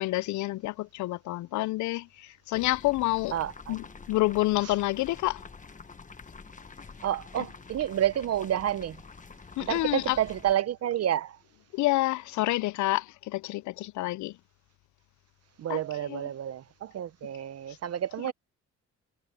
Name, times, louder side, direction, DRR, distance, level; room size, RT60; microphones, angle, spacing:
voice 1, 0.0-3.3 3.7-5.4 9.6-10.2 11.7-14.3 15.7-15.8 16.1-16.2 18.2-18.3, left 18 dB, 75° left, 0.5 m, -28 dB
sound 1, 2.5-10.5, left 4 dB, 25° left, 1.3 m, -47 dB
voice 2, 3.3-3.8 7.0-9.0 9.7-11.4 15.6-18.3, right 11 dB, 55° right, 0.7 m, -29 dB
cardioid pair, 90°, 30 cm